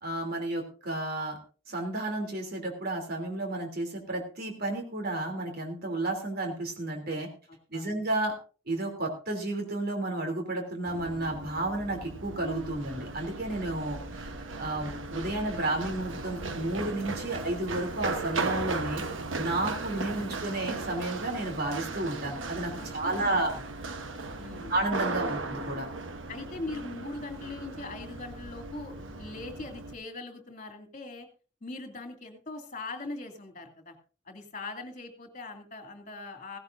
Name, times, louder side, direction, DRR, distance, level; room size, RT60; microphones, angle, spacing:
voice 1, 0.0-1.4 1.7-7.3 7.7-8.3 8.7-14.3 14.6-19.0 19.3-23.5 24.7-25.9, right 2 dB, 55° right, 2 dB, 3.2 m, -32 dB
voice 2, 7.5-7.9 20.0-20.1 22.8-23.6 24.4-24.7 26.3-31.3 31.6-34.0 34.2-36.6, left 2 dB, 40° left, 5 dB, 2.7 m, -41 dB
Run, 10.9-29.9, right 3 dB, 80° right, 1.2 m, -37 dB
16.5 x 16.0 x 2.7 m, 0.36 s
head